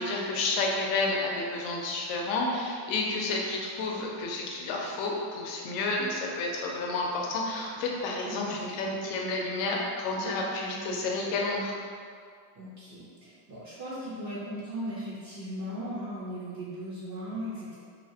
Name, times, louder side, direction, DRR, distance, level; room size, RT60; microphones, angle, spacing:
voice 1, 0.0-11.7, left 2 dB, 85° left, -1 dB, 0.6 m, -30 dB
voice 2, 12.6-17.8, equal, 40° right, -8 dB, 0.6 m, -37 dB
2.8 x 2.0 x 2.7 m, 2.1 s
cardioid pair, 120°, 48 cm